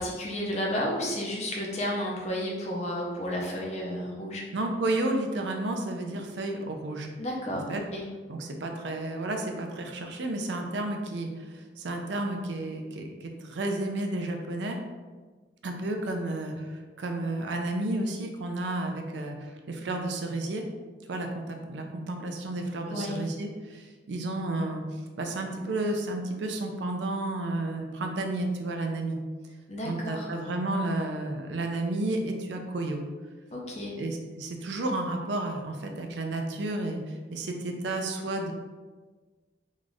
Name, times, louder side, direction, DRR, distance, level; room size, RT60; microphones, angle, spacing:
voice 1, 0.0-4.4 7.2-8.0 22.9-23.2 29.7-30.3 33.5-34.0, equal, 40° left, -2 dB, 0.6 m, -32 dB
voice 2, 4.5-7.1 7.5-7.8 8.3-14.8 15.6-20.6 21.1-29.2 29.8-33.0 34.0-38.5, right 2 dB, 85° right, 3 dB, 0.5 m, -32 dB
3.1 x 2.4 x 3.9 m, 1.4 s
head